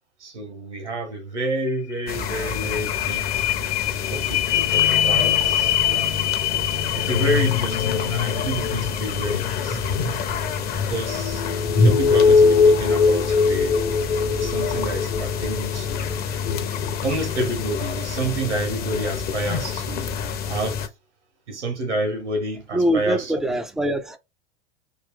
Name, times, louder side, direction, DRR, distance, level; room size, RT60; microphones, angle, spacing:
voice 1, 0.2-3.3 4.1-6.2 6.9-10.2 10.9-11.4 11.8-13.8 14.3-16.1 17.0-20.1 20.5-20.8 21.5-23.3, right 2 dB, 85° right, 1.5 m, -29 dB
sound 1, 1.7-1.8 2.0-18.0 18.5-18.6, left 6 dB, 75° left, 0.5 m, -23 dB
sound 2, 2.1-20.9, left 5 dB, 30° left, 0.7 m, -28 dB
voice 2, 22.7-24.2, equal, ahead, 0.3 m, -23 dB
3.3 x 2.3 x 3.7 m
hypercardioid pair, 100°, 34 cm